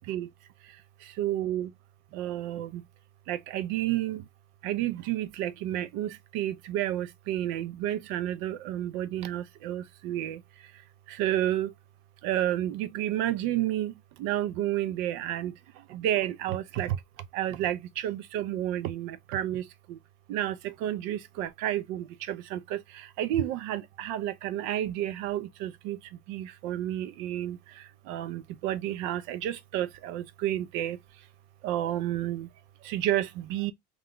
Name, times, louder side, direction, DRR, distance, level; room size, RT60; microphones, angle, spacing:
voice 1, 1.2-1.7 2.1-2.7 3.3-4.2 4.6-6.1 6.3-10.4 11.2-11.7 12.2-13.9 14.2-15.5 15.9-17.0 17.3-17.8 18.0-19.6 20.3-20.6 20.8-22.8 23.2-26.0 26.3-27.6 28.1-31.0 31.6-32.5 32.9-33.7, right 12 dB, 65° right, 0.5 m, -30 dB
2.4 x 2.1 x 3.6 m
supercardioid pair, 110°, 31 cm